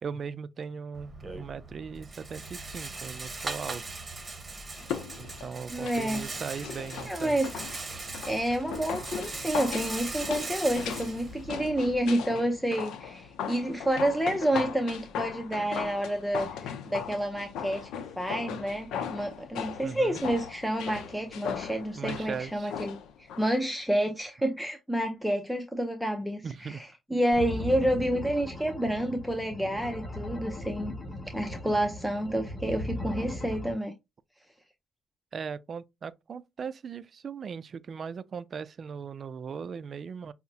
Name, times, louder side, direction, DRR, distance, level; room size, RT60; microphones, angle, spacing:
voice 1, 0.0-3.8 5.2-7.4 19.8-20.2 21.9-22.7 26.4-26.8 35.3-40.3, right 6 dB, 50° right, 0.4 m, -38 dB
Rattle, 0.9-12.0, right 3 dB, 25° right, 0.9 m, -39 dB
sound 1, 4.8-23.6 23.9-24.0, left 8 dB, 85° left, 0.5 m, -38 dB
voice 2, 5.7-6.2 7.1-7.5 8.3-17.9 18.2-23.0 23.4-26.8 27.1-30.9 31.3-33.9, right 1 dB, ahead, 0.6 m, -29 dB
sound 2, 27.3-33.7, left 1 dB, 30° left, 2.2 m, -38 dB
5.6 x 2.1 x 2.7 m
cardioid pair, 90°, 0 cm